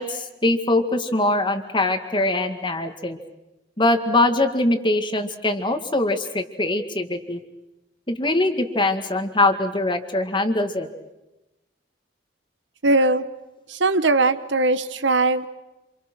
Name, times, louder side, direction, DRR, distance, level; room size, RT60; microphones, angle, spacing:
voice 1, 0.0-3.2 3.8-7.4 8.1-10.9, left 2 dB, 25° left, 7 dB, 2.0 m, -22 dB
voice 2, 12.8-13.2 13.7-15.5, right 2 dB, 75° right, 12 dB, 1.2 m, -20 dB
28.0 x 27.0 x 6.2 m, 1.0 s
head